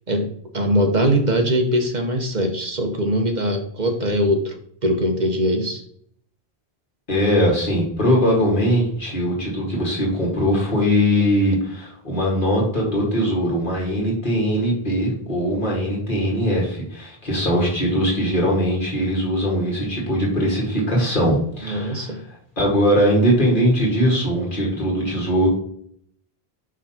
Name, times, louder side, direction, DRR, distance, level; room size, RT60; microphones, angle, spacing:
voice 1, 0.1-4.6 4.8-5.8 21.6-22.2, equal, 45° right, 4 dB, 1.1 m, -21 dB
voice 2, 7.1-22.1 22.6-25.5, equal, 55° left, -4 dB, 2.1 m, -20 dB
5.0 x 3.9 x 5.7 m, 0.64 s
omnidirectional pair, 1.1 m